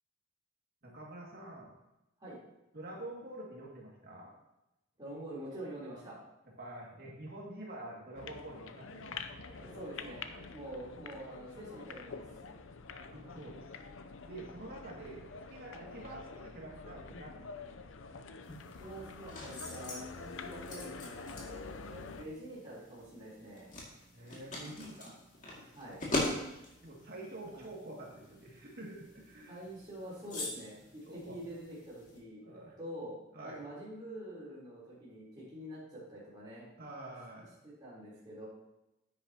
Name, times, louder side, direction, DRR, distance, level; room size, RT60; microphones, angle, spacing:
voice 1, 0.8-1.7 2.7-4.3 6.6-9.7 10.3-10.5 13.0-13.6 14.2-17.7 21.3-21.5 24.1-25.1 25.5-25.8 26.5-29.6 31.1-31.4 32.0-32.1 32.4-32.8 33.3-33.6 36.8-37.5, right 1 dB, 50° right, -3 dB, 2.2 m, -47 dB
voice 2, 5.0-6.2 9.6-12.3 15.7-15.9 18.8-23.7 25.7-26.0 27.5-27.6 29.5-32.4 32.8-33.2 33.4-36.7 37.6-38.5, right 1 dB, 20° right, -9 dB, 3.5 m, -46 dB
sound 1, 8.1-22.2, left 4 dB, 80° left, 0.6 m, -47 dB
sound 2, 18.4-32.2, left 2 dB, 40° left, 2.2 m, -43 dB
10.5 x 8.7 x 2.9 m, 0.93 s
head